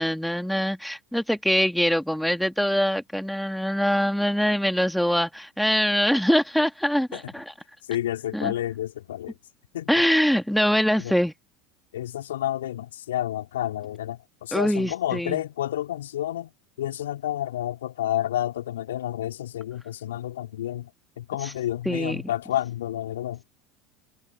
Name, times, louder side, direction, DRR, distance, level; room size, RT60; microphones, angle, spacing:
voice 1, 0.0-7.5 8.3-8.5 9.9-11.3 14.5-15.4 21.4-21.5 21.9-22.2, equal, ahead, 2.3 m, -23 dB
voice 2, 7.9-9.4 9.7-10.0 11.0-11.2 11.9-16.5 16.8-20.9 21.2-23.4, left 12 dB, 75° left, 4.8 m, -30 dB
figure-of-eight pair, 75°, 0 cm